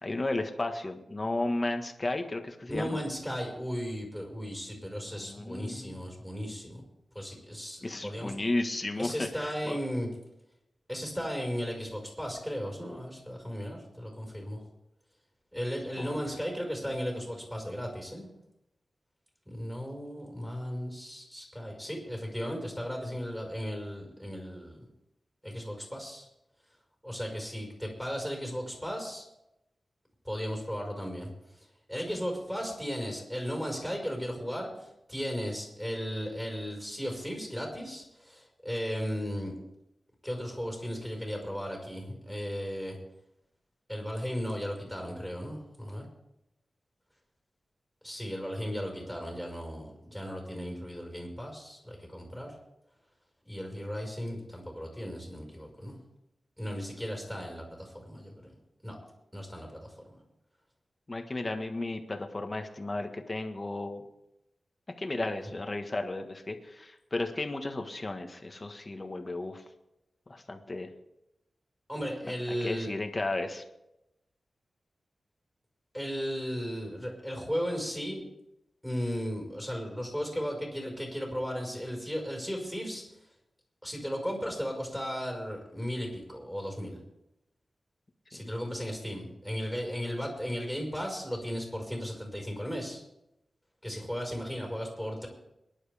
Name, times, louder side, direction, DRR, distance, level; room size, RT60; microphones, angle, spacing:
voice 1, 0.0-3.0 5.1-6.0 7.8-9.8 16.0-16.1 61.1-64.0 65.0-69.6 70.3-70.9 72.5-73.6 88.3-88.5, left 2 dB, 30° left, 5 dB, 1.6 m, -34 dB
voice 2, 2.7-6.8 7.1-8.3 9.0-10.1 10.9-14.6 15.5-18.3 19.5-24.9 25.4-26.3 27.0-29.3 30.2-31.3 31.6-39.5 40.2-43.0 43.9-46.1 48.0-52.5 53.5-55.9 56.6-58.6 58.8-59.0 59.3-60.1 71.9-72.9 75.9-78.2 78.8-83.0 83.8-87.0 88.3-93.0 93.8-95.3, equal, ahead, 1 dB, 5.3 m, -36 dB
22.5 x 11.0 x 3.6 m, 0.87 s
wide cardioid pair, 85°, 0 cm